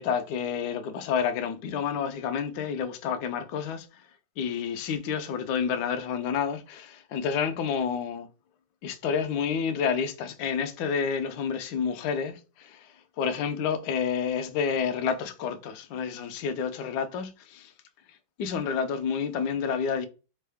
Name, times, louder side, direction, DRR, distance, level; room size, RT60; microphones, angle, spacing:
voice 1, 0.0-3.9 4.4-8.3 8.8-12.9 13.2-17.7 18.4-20.1, left 6 dB, 75° left, 0.9 m, -29 dB
4.1 x 3.7 x 3.4 m
omnidirectional pair, 2.3 m